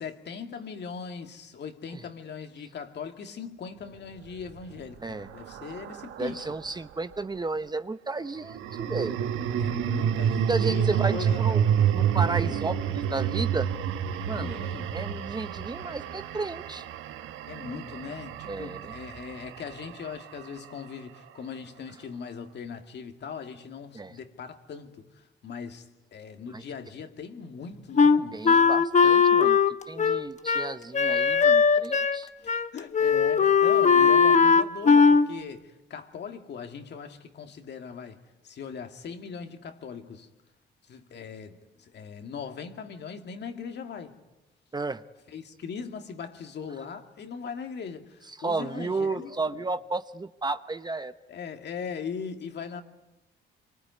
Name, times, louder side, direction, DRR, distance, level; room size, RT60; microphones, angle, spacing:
voice 1, 0.0-6.4 9.6-11.4 12.3-12.6 14.3-14.9 17.5-25.0 25.4-25.9 26.1-28.4 32.7-38.2 38.4-40.3 40.9-44.2 45.3-49.6 51.3-52.8, left 6 dB, 60° left, 2.3 m, -39 dB
sound 1, 4.3-6.8 8.4-20.7, right 9 dB, 90° right, 1.4 m, -29 dB
voice 2, 6.2-9.2 10.5-11.6 11.9-13.7 14.2-14.6 14.9-16.8 18.5-18.9 23.9-24.2 26.5-26.6 28.3-29.6 29.9-32.3 34.0-34.1 44.7-45.0 48.4-51.1, right 3 dB, 20° right, 0.9 m, -32 dB
Wind instrument woodwind instrument, 28.0-32.2 32.5-32.7 32.9-35.3, left 5 dB, 35° left, 1.0 m, -19 dB
25.5 x 23.5 x 9.5 m
cardioid pair, 90°, 20 cm